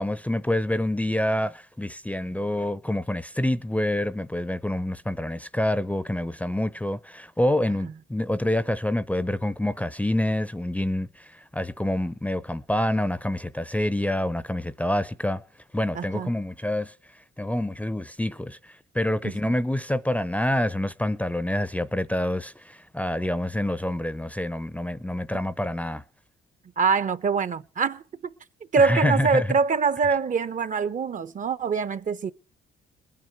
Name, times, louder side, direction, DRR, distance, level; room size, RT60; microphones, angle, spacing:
voice 1, 0.0-15.4 15.7-26.0 28.8-29.5, left 1 dB, 5° left, 0.6 m, -27 dB
voice 2, 15.9-16.3 19.2-19.3 26.8-28.3 28.7-32.3, right 5 dB, 40° right, 0.7 m, -24 dB
20.5 x 9.5 x 5.8 m
cardioid pair, 110°, 21 cm